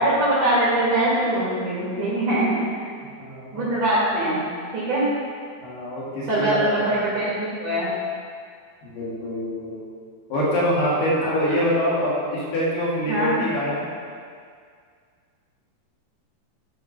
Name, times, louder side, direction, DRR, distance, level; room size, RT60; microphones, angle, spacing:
voice 1, 0.0-2.6 3.5-4.4 4.7-5.0 6.3-8.0 11.2-11.6 13.1-13.3, right 1 dB, 55° right, -8 dB, 3.3 m, -22 dB
voice 2, 3.2-3.6 5.6-6.6 8.8-9.8 10.3-13.8, equal, 80° left, -7 dB, 4.1 m, -25 dB
12.0 x 5.5 x 5.8 m, 2.1 s
omnidirectional pair, 4.5 m